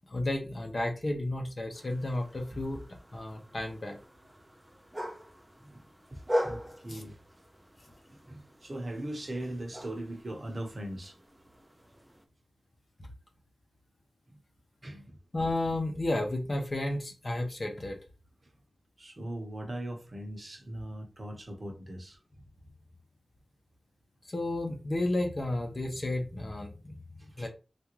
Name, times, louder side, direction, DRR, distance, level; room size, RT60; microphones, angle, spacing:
voice 1, 0.1-2.8 3.1-4.0 6.9-7.0 13.0-13.1 15.3-18.0 24.3-27.0 27.4-27.5, left 1 dB, 40° left, 0.8 m, -32 dB
sound 1, 1.7-12.3, equal, 10° right, 0.6 m, -41 dB
voice 2, 6.1-7.2 8.1-11.1 14.3-14.4 14.8-15.2 19.0-22.2 27.2-27.5, right 1 dB, 40° right, 0.9 m, -40 dB
3.5 x 2.5 x 3.0 m
wide cardioid pair, 95°, 0 cm